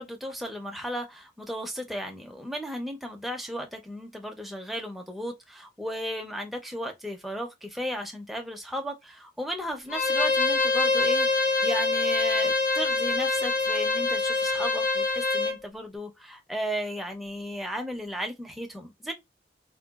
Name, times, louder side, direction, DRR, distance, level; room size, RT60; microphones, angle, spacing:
voice 1, 0.0-19.1, equal, ahead, 0.4 m, -35 dB
Bowed string instrument, 9.9-15.5, left 3 dB, 45° left, 0.7 m, -25 dB
3.7 x 2.2 x 2.3 m
head